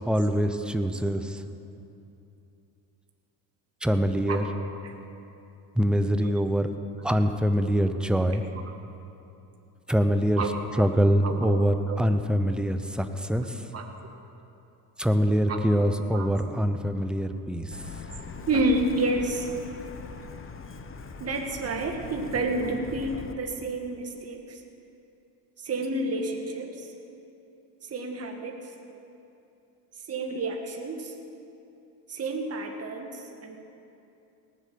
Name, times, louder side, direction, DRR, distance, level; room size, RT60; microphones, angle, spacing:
voice 1, 0.0-1.4 3.8-4.4 5.8-6.7 7.0-8.4 9.9-10.4 10.8-13.6 15.0-17.7, equal, ahead, 8 dB, 0.8 m, -24 dB
voice 2, 4.3-4.9 6.2-6.3 8.6-8.7 10.4-10.9 11.2-12.0 13.7-13.9 15.5-16.3 18.5-19.5 21.2-24.6 25.6-26.9 27.9-28.6 30.1-31.1 32.1-33.6, right 2 dB, 30° right, 3 dB, 1.8 m, -30 dB
Truck, 17.7-23.3, left 4 dB, 25° left, 1.1 m, -41 dB
18.5 x 7.7 x 7.7 m, 2.8 s
supercardioid pair, 80°, 47 cm